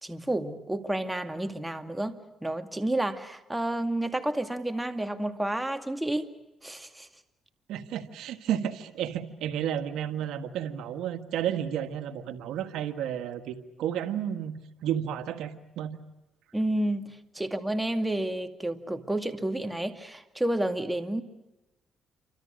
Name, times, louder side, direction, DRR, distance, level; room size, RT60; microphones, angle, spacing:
voice 1, 0.0-6.3 6.6-7.1 16.5-21.2, right 1 dB, 10° right, 7 dB, 2.3 m, -30 dB
voice 2, 7.7-16.0, right 10 dB, 85° right, 8 dB, 1.7 m, -32 dB
28.5 x 25.5 x 6.4 m, 0.98 s
cardioid pair, 90°, 0 cm